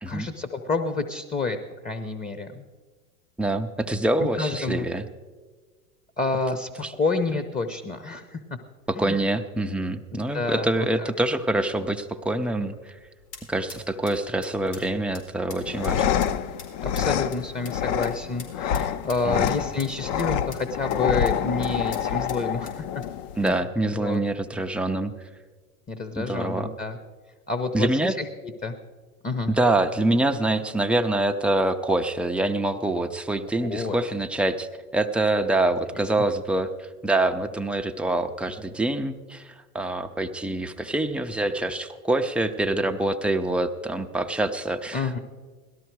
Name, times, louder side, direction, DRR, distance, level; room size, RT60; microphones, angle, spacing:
voice 1, 0.1-1.6 1.8-2.7 4.2-4.9 6.2-8.4 8.9-9.2 10.1-11.1 16.8-22.8 23.4-23.5 23.9-24.2 25.9-27.0 27.5-28.3 28.6-28.7 29.2-29.5 33.6-34.0 44.9-45.2, left 3 dB, 20° left, 10 dB, 0.8 m, -29 dB
voice 2, 3.4-5.0 6.8-6.9 8.9-13.0 13.5-16.2 19.3-19.6 23.4-25.1 26.2-26.7 27.7-28.2 29.5-34.7 34.9-45.2, right 2 dB, 5° right, 5 dB, 0.4 m, -25 dB
sound 1, 12.6-24.2, left 4 dB, 80° left, 4.2 m, -48 dB
sound 2, 15.6-23.5, left 9 dB, 50° left, 0.7 m, -27 dB
17.5 x 13.0 x 4.7 m, 1.4 s
hypercardioid pair, 100°, 46 cm